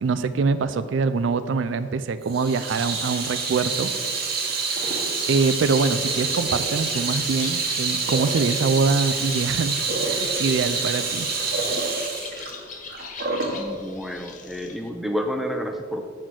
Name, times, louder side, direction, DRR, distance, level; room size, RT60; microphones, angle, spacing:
voice 1, 0.0-3.9 5.3-11.3, right 4 dB, 70° right, 13 dB, 0.4 m, -24 dB
Water tap faucet / Sink (filling or washing), 2.3-13.6, right 4 dB, 50° right, 1.0 m, -27 dB
Bird, 5.2-14.9, left 5 dB, 40° left, 0.7 m, -40 dB
voice 2, 13.5-16.1, equal, ahead, 5 dB, 0.4 m, -30 dB
7.9 x 4.2 x 6.0 m, 2.1 s
head